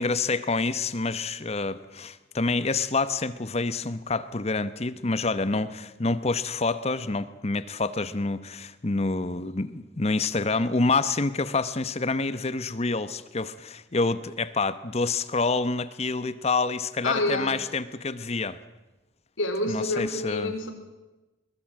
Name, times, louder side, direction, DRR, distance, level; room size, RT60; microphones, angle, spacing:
voice 1, 0.0-18.6 19.7-20.5, left 3 dB, 35° left, 14 dB, 0.9 m, -27 dB
voice 2, 17.0-17.6 19.4-20.7, left 2 dB, 85° left, 6 dB, 4.1 m, -28 dB
22.5 x 21.0 x 7.5 m, 1.1 s
head